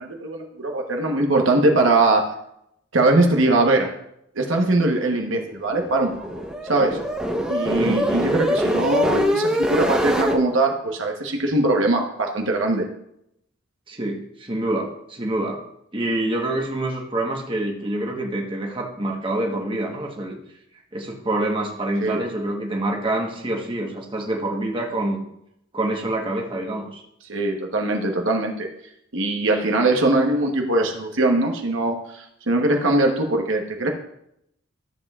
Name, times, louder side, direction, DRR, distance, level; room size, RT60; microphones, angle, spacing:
voice 1, 0.0-2.3 2.9-3.9 4.3-7.0 7.5-12.9 22.0-22.2 27.3-28.7 29.1-33.9, right 2 dB, 65° right, 2 dB, 1.1 m, -21 dB
sound 1, 5.7-10.4, equal, 5° right, 0.8 m, -23 dB
voice 2, 13.9-15.6 15.9-20.4 20.9-25.2 25.7-27.0, right 1 dB, 25° right, 0 dB, 1.2 m, -26 dB
13.5 x 7.4 x 2.4 m, 0.77 s
head